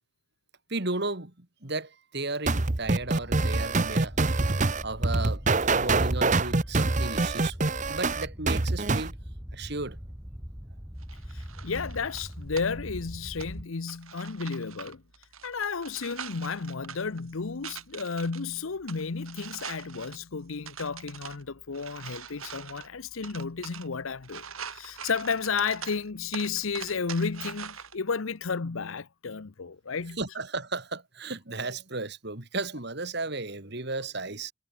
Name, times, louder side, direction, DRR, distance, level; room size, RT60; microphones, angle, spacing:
voice 1, 0.7-4.5 4.8-7.6 7.9-9.2 9.5-10.0 30.2-34.5, right 3 dB, 50° right, 2.6 m, -34 dB
sound 1, 2.5-9.1, right 3 dB, 35° right, 0.9 m, -25 dB
sound 2, 2.8-13.6, equal, 10° right, 2.2 m, -41 dB
sound 3, 11.0-28.0, right 7 dB, 85° right, 7.0 m, -45 dB
voice 2, 11.3-15.0 15.4-24.5 24.7-30.2, left 5 dB, 75° left, 0.8 m, -32 dB
head